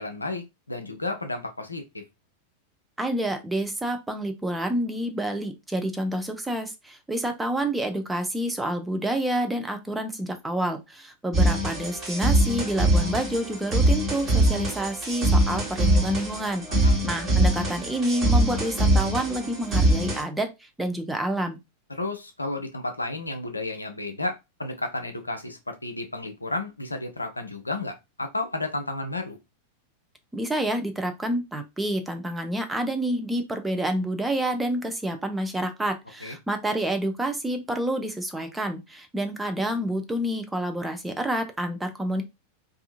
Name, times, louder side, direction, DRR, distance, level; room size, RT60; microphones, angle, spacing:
voice 1, 0.0-1.8 16.7-17.0 21.9-29.4 36.2-36.4, left 2 dB, 85° left, 6 dB, 0.5 m, -32 dB
voice 2, 3.0-21.6 30.3-42.2, right 1 dB, 10° right, 6 dB, 0.5 m, -28 dB
sound 1, 11.3-20.2, right 1 dB, 25° right, 1.2 m, -23 dB
2.7 x 2.4 x 2.4 m, 0.23 s
figure-of-eight pair, 90°, 0 cm